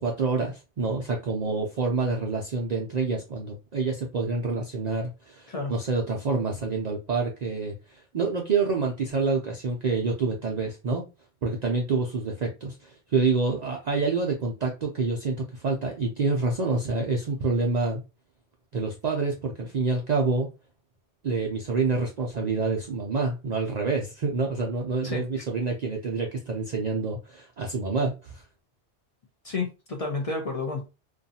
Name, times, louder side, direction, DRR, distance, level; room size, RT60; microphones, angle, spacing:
voice 1, 0.0-11.0 11.4-18.0 18.7-20.5 21.2-28.4, right 3 dB, 55° right, 0.5 m, -27 dB
voice 2, 29.4-30.9, left 3 dB, 40° left, 0.6 m, -30 dB
2.5 x 2.3 x 2.7 m
omnidirectional pair, 1.1 m